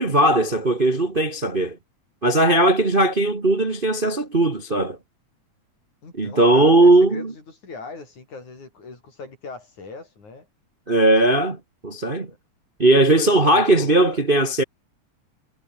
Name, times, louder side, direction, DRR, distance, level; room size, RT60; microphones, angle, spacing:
voice 1, 0.0-1.8 2.2-5.0 6.1-7.3 10.9-11.6 11.8-12.3 12.8-14.6, right 2 dB, 20° right, 1.5 m, -18 dB
voice 2, 6.0-10.5 13.2-14.2, left 4 dB, 80° left, 7.9 m, -40 dB
omnidirectional pair, 3.3 m